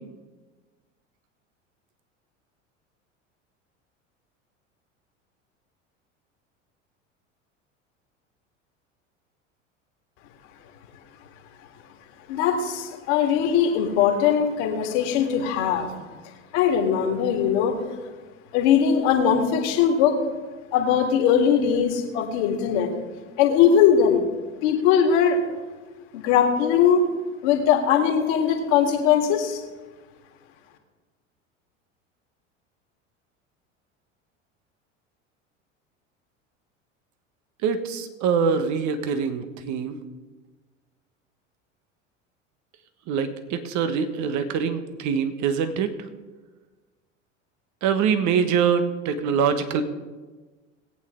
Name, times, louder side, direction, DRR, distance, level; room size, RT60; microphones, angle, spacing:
voice 1, 12.3-15.9 16.5-17.8 18.5-20.2 20.7-22.9 23.4-24.3 24.6-25.4 26.1-27.1 27.4-29.6, left 8 dB, 60° left, 3 dB, 2.2 m, -20 dB
voice 2, 37.6-40.0 43.1-45.9 47.8-49.8, right 6 dB, 50° right, 9 dB, 1.4 m, -24 dB
20.0 x 8.7 x 3.8 m, 1.3 s
hypercardioid pair, 80°, 37 cm